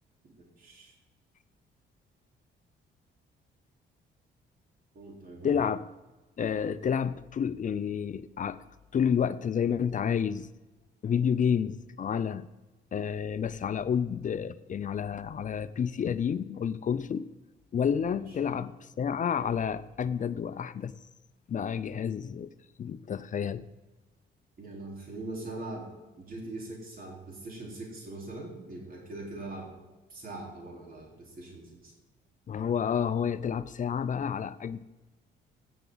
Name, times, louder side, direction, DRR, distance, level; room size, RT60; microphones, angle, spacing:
voice 1, 0.6-0.9 4.9-5.6 18.1-18.5 24.6-25.9 26.2-29.7 30.1-31.9, right 2 dB, 45° right, -2 dB, 3.9 m, -42 dB
voice 2, 5.4-5.8 6.4-8.6 8.9-10.5 11.0-12.5 12.9-17.3 17.7-18.7 19.0-20.9 21.5-22.5 22.8-23.6 32.5-34.8, left 7 dB, 40° left, 15 dB, 0.5 m, -29 dB
16.5 x 6.9 x 4.0 m, 1.1 s
cardioid pair, 90°, 20 cm